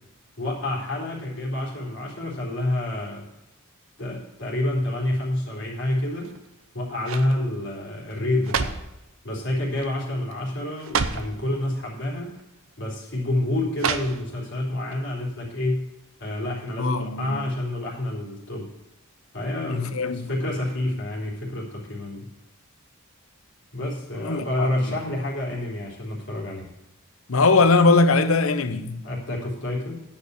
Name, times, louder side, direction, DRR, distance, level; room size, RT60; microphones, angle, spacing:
voice 1, 0.4-3.2 4.0-6.3 6.7-8.8 9.2-12.3 12.8-15.8 16.2-18.7 19.3-22.3 23.7-26.7 29.0-29.9, left 1 dB, 60° left, 3.4 m, -28 dB
sound 1, 6.2-6.6 7.0-7.4 8.1-9.0 9.8-10.0 10.3-10.4 10.8-11.3 12.3-12.4 13.8-14.5 14.9-15.0, right 5 dB, 70° right, 0.8 m, -29 dB
voice 2, 16.8-17.4 19.7-20.3 24.2-24.7 27.3-29.0, left 3 dB, 80° left, 0.8 m, -20 dB
10.0 x 5.5 x 8.0 m
head